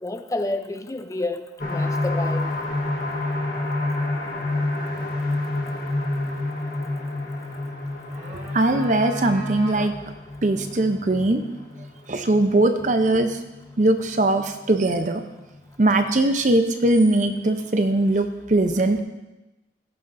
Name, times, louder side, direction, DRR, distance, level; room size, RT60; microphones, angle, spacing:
voice 1, 0.0-2.5, left 2 dB, 15° left, 7 dB, 0.5 m, -29 dB
sound 1, 1.6-15.1 15.5-15.6 16.0-16.1, left 2 dB, 50° left, 1.6 m, -29 dB
sound 2, 7.9-10.2, right 1 dB, 90° right, 2.7 m, -39 dB
voice 2, 8.5-10.0 10.4-11.4 12.1-13.4 13.8-15.2 15.8-19.0, right 2 dB, 40° right, 7 dB, 0.6 m, -20 dB
16.5 x 6.8 x 2.6 m, 1.1 s
head